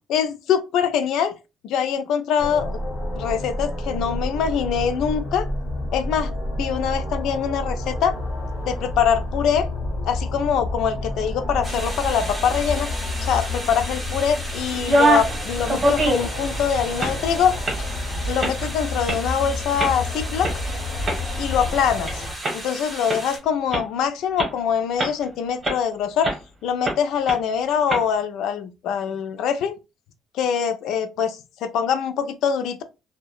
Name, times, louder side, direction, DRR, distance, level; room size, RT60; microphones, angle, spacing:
voice 1, 0.1-1.4 1.6-2.8 3.2-5.5 5.9-6.3 6.6-8.2 8.6-9.7 10.1-12.9 13.2-17.5 18.3-20.5 21.4-22.2 22.5-26.4 26.6-29.8 30.3-32.8, left 7 dB, 80° left, 0.4 m, -23 dB
sound 1, 2.4-22.3, left 1 dB, 45° left, 0.8 m, -29 dB
sound 2, 11.6-23.4, right 1 dB, 5° right, 0.9 m, -35 dB
sound 3, 14.7-15.3 15.7-16.4 16.8-17.2 17.7-17.8 18.4-18.7 19.1-19.2 19.8-19.9 20.4-20.5 21.0-22.1 22.4-22.5 23.1-23.2 23.7-23.8 24.4-24.5 25.0-25.2 25.6-25.8 26.2-26.4 26.8-27.0 27.3-27.4 27.9-28.0, right 1 dB, 30° right, 0.9 m, -22 dB
2.8 x 2.1 x 2.3 m
cardioid pair, 125°, 0 cm